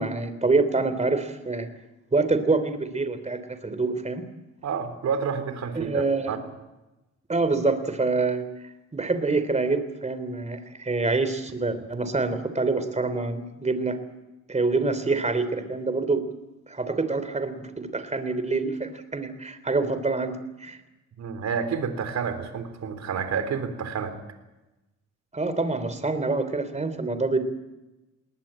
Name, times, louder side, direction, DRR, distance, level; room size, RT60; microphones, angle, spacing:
voice 1, 0.0-1.7 2.1-4.2 5.7-6.4 7.3-8.4 8.9-14.0 14.5-16.2 16.7-20.8 25.3-27.4, right 3 dB, 25° right, 11 dB, 3.3 m, -26 dB
voice 2, 4.6-6.4 21.2-24.2, right 6 dB, 65° right, 9 dB, 3.7 m, -29 dB
20.5 x 19.0 x 8.8 m, 1.0 s
cardioid pair, 90°, 30 cm